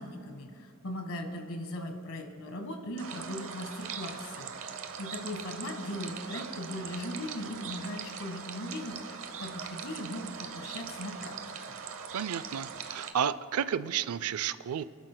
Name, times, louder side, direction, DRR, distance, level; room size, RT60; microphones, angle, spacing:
voice 1, 0.0-11.3 11.7-11.8, left 1 dB, 70° left, 5 dB, 1.5 m, -39 dB
sound 1, 3.0-13.1, right 6 dB, 65° right, 0.8 m, -41 dB
voice 2, 12.1-14.8, right 8 dB, 85° right, 15 dB, 0.4 m, -32 dB
29.5 x 12.0 x 2.2 m, 2.5 s
head